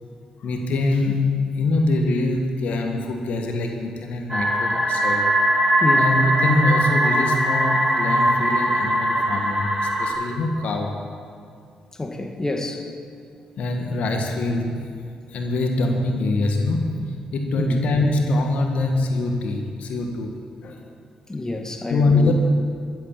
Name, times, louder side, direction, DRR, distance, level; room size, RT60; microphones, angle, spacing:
voice 1, 0.4-5.3 5.9-11.1 13.6-20.3 20.6-20.9 21.9-22.3, left 2 dB, 65° left, 3 dB, 1.4 m, -24 dB
sound 1, 4.3-10.1, equal, 15° right, 3.2 m, -21 dB
voice 2, 12.0-12.9 17.6-17.8 21.3-22.3, left 2 dB, 25° left, 4 dB, 1.6 m, -27 dB
13.5 x 8.0 x 7.4 m, 2.3 s
hypercardioid pair, 50°, 2 cm